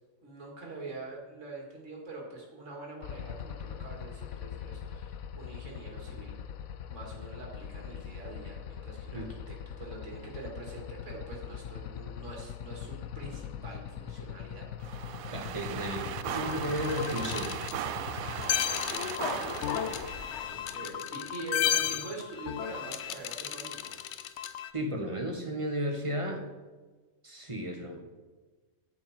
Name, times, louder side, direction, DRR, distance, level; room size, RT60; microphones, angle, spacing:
voice 1, 0.2-6.4 6.9-14.7 14.9-15.1 18.4-24.0, right 2 dB, 60° right, -2 dB, 2.5 m, -44 dB
sound 1, 3.0-18.5, left 8 dB, 85° left, 1.1 m, -42 dB
sound 2, 14.8-20.5, right 10 dB, 90° right, 1.0 m, -38 dB
voice 2, 15.3-17.6 24.7-26.4 27.2-28.0, equal, 25° right, 2 dB, 1.2 m, -34 dB
sound 3, 16.3-24.7, left 11 dB, 65° left, 0.8 m, -34 dB
9.5 x 8.6 x 4.3 m, 1.3 s
omnidirectional pair, 1.4 m